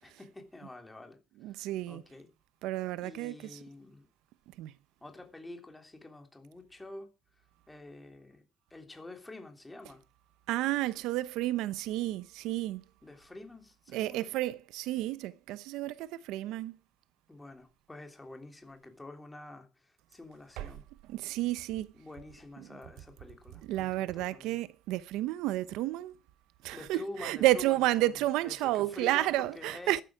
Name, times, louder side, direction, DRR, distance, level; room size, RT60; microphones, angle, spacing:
voice 1, 0.0-2.3 3.0-4.1 5.0-7.1 7.7-8.4 8.7-10.0 13.0-14.3 17.3-20.8 21.9-24.6 26.7-28.1 28.4-30.0, left 2 dB, 10° left, 3.1 m, -47 dB
voice 2, 1.4-2.0 2.6-3.6 4.6-4.7 10.5-12.8 13.9-16.8 20.6-20.7 21.1-21.9 22.6-22.7 23.6-26.2 26.6-30.0, right 16 dB, 90° right, 0.8 m, -31 dB
14.0 x 12.5 x 4.8 m
cardioid pair, 150°, 0 cm